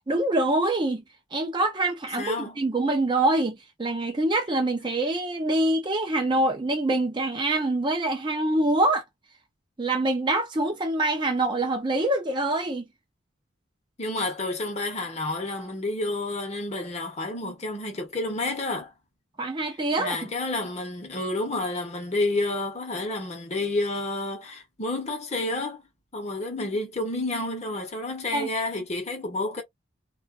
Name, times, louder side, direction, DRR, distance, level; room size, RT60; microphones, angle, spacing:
voice 1, 0.1-1.0 1.3-9.0 9.8-12.8 19.4-20.2 28.3-28.5, right 2 dB, 25° right, 0.5 m, -25 dB
voice 2, 2.2-2.6 6.3-6.5 14.0-18.9 20.0-25.8 26.1-29.6, left 2 dB, 35° left, 0.8 m, -30 dB
2.4 x 2.3 x 2.4 m
head